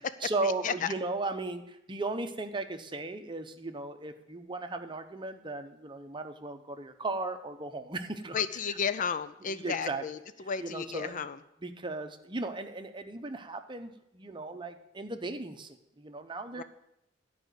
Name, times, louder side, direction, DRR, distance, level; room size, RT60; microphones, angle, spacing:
voice 1, 0.2-8.4 9.5-10.0 10.6-11.2 11.6-16.6, right 2 dB, 25° right, 7 dB, 0.8 m, -36 dB
voice 2, 8.3-10.2 10.5-11.4 16.6-16.7, left 6 dB, 45° left, 13 dB, 0.4 m, -32 dB
11.5 x 5.0 x 8.0 m, 0.82 s
head